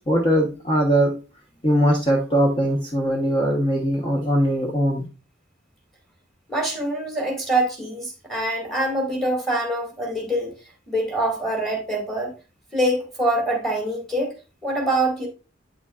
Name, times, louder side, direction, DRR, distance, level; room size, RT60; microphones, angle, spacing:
voice 1, 0.1-1.1 1.6-5.0, equal, 25° left, 0.9 m, -20 dB
voice 2, 6.5-10.5 10.9-12.3 12.7-14.3 14.6-15.3, right 1 dB, ahead, 1.9 m, -24 dB
8.6 x 6.0 x 2.4 m
head